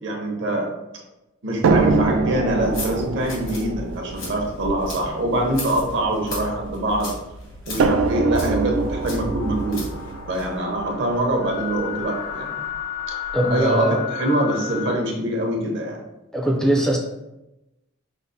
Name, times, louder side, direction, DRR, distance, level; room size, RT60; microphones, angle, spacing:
voice 1, 0.0-0.7 1.4-7.1 7.6-9.9 10.3-12.6 13.1-13.2 13.5-16.0, right 1 dB, 65° right, 0 dB, 0.7 m, -24 dB
sound 1, 1.6-6.9 7.8-11.8 12.7-12.8 13.3-13.4, right 4 dB, 80° right, 0.3 m, -25 dB
sound 2, 2.5-10.5, left 2 dB, 75° left, 1.1 m, -37 dB
sound 3, 8.4-15.0, left 10 dB, 90° left, 0.6 m, -34 dB
voice 2, 13.3-13.9 16.3-17.0, right 1 dB, 5° left, -1 dB, 0.3 m, -20 dB
5.2 x 2.0 x 2.5 m, 0.95 s
head